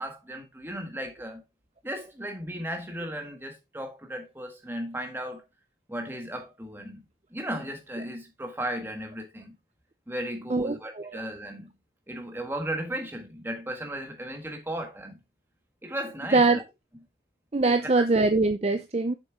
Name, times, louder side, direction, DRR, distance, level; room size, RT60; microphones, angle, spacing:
voice 1, 0.0-1.4 1.8-5.5 5.9-7.0 7.3-9.5 10.1-11.7 12.1-15.2 15.8-16.6 17.6-18.1, right 1 dB, 10° right, 1.5 m, -35 dB
voice 2, 10.5-11.2 16.3-16.6 17.5-19.1, right 3 dB, 35° right, 0.5 m, -23 dB
7.5 x 6.4 x 3.6 m
head